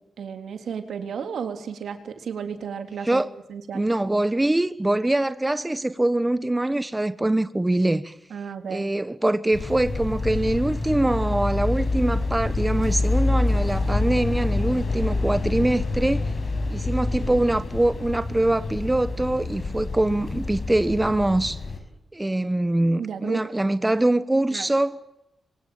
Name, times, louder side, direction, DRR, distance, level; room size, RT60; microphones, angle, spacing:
voice 1, 0.2-3.2 3.5-3.8 8.3-8.9 23.0-23.4 24.5-24.7, right 7 dB, 85° right, 3.6 m, -33 dB
voice 2, 3.7-8.1 8.7-16.3 16.7-21.6 22.1-25.0, right 1 dB, 15° right, 1.1 m, -23 dB
sound 1, 9.5-21.8, left 2 dB, 55° left, 6.5 m, -27 dB
26.5 x 24.5 x 9.2 m
cardioid pair, 95°, 0 cm